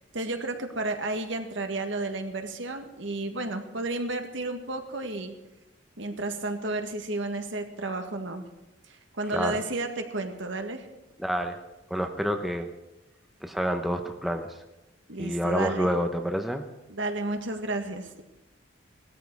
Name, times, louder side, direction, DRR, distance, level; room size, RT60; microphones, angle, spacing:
voice 1, 0.1-5.3 6.0-8.5 8.9-10.9 15.1-15.9 16.9-18.2, right 2 dB, 70° right, 5 dB, 1.8 m, -32 dB
voice 2, 11.2-11.6 11.9-12.7 13.4-14.5 15.2-16.6, equal, ahead, 5 dB, 0.9 m, -28 dB
17.5 x 13.5 x 4.7 m, 1.0 s
head